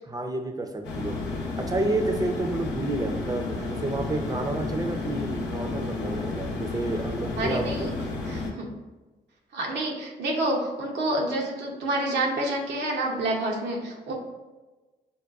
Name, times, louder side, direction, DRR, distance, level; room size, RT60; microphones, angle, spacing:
voice 1, 0.1-1.2 1.6-7.7, right 2 dB, 20° right, 4 dB, 0.5 m, -30 dB
sound 1, 0.8-8.5, left 3 dB, 80° left, 0.7 m, -32 dB
voice 2, 7.4-7.9 8.3-8.7 9.5-14.1, right 1 dB, 75° right, -1 dB, 0.7 m, -28 dB
5.3 x 2.2 x 2.4 m, 1.2 s
supercardioid pair, 45°, 18 cm